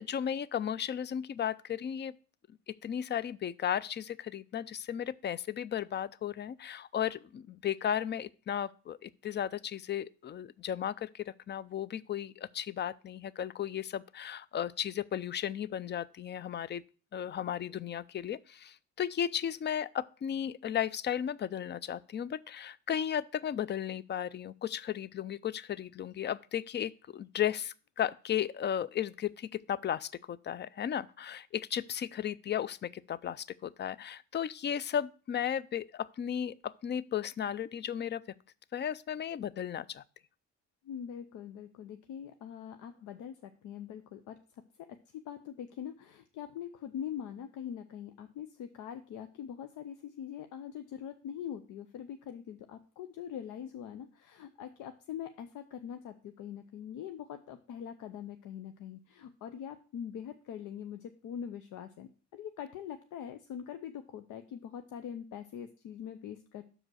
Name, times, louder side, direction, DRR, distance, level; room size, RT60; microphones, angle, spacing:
voice 1, 0.0-2.2 2.7-16.8 17.1-38.2 38.7-40.0, left 9 dB, 35° left, 0.4 m, -35 dB
voice 2, 40.8-44.4 44.9-66.6, left 9 dB, 80° left, 0.6 m, -43 dB
6.5 x 4.9 x 6.2 m
cardioid pair, 90°, 30 cm